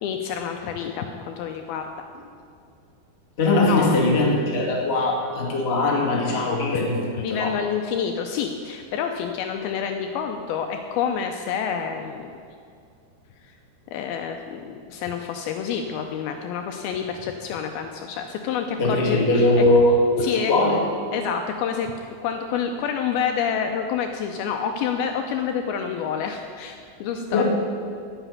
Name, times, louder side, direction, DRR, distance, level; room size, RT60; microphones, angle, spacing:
voice 1, 0.0-2.1 3.7-4.1 5.0-5.1 7.2-12.4 13.5-13.6 13.9-19.7 20.2-20.5 21.1-21.9 22.2-27.4, left 7 dB, 80° left, 5 dB, 2.3 m, -28 dB
voice 2, 3.4-7.5 18.8-20.8 27.3-27.4, left 2 dB, 30° left, -3 dB, 1.2 m, -20 dB
9.9 x 8.0 x 9.5 m, 2.3 s
omnidirectional pair, 4.8 m